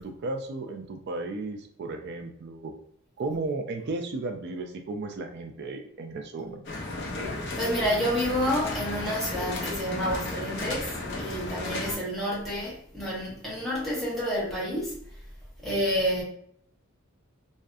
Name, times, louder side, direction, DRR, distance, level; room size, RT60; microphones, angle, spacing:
voice 1, 0.0-2.7 3.2-6.7, right 3 dB, 55° right, 0.4 m, -34 dB
sound 1, 6.6-12.0, left 2 dB, 55° left, 0.6 m, -34 dB
voice 2, 7.6-10.9 11.2-14.9 15.6-16.2, equal, ahead, 0.9 m, -29 dB
2.6 x 2.4 x 2.3 m
head